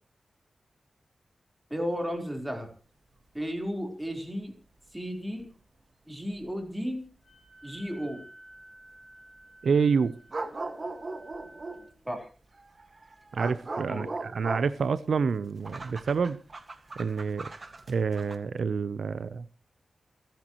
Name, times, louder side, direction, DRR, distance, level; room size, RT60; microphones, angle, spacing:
voice 1, 1.7-2.7 3.3-4.5 4.9-5.5 6.1-7.1 7.6-8.2 12.1-12.3 13.9-14.1, equal, 10° right, 4.1 m, -33 dB
sound 1, 5.4-5.5 6.4-6.5 10.3-11.9 12.5-18.4, right 3 dB, 35° right, 1.8 m, -39 dB
Wind instrument woodwind instrument, 7.2-11.9, right 1 dB, 30° left, 7.7 m, -53 dB
voice 2, 9.6-10.1 13.3-16.4 17.0-17.5 17.9-19.4, right 5 dB, 80° right, 0.7 m, -27 dB
28.0 x 10.5 x 3.1 m
wide cardioid pair, 160°, 0 cm